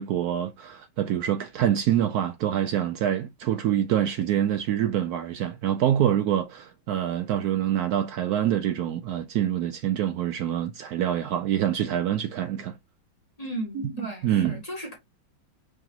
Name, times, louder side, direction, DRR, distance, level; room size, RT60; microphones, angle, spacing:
voice 1, 0.0-12.8 13.8-13.9 14.2-14.5, right 10 dB, 85° right, 0.8 m, -26 dB
voice 2, 13.4-14.9, right 1 dB, 20° left, 1.6 m, -35 dB
5.0 x 3.6 x 2.7 m
omnidirectional pair, 2.3 m